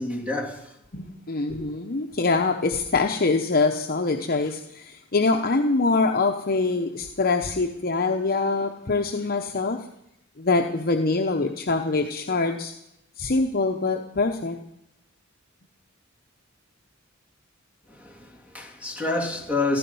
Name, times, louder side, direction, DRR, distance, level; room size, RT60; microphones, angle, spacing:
voice 1, 0.0-0.8 1.5-1.6 17.9-19.8, left 2 dB, 5° right, 3.2 m, -28 dB
voice 2, 0.9-9.8 10.4-12.7 13.2-14.6, left 3 dB, 45° left, 1.0 m, -24 dB
15.5 x 15.0 x 5.5 m
head